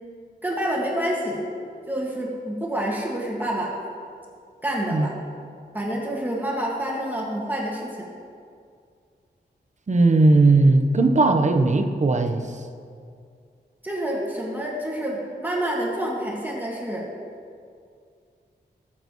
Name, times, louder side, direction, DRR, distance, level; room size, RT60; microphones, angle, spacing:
voice 1, 0.4-1.5 1.9-3.7 4.6-5.1 5.7-8.1 13.8-17.1, right 1 dB, 10° right, -4 dB, 1.9 m, -28 dB
voice 2, 9.9-12.4, right 3 dB, 40° right, 4 dB, 1.0 m, -18 dB
19.5 x 7.7 x 3.1 m, 2.3 s
wide cardioid pair, 115°, 18 cm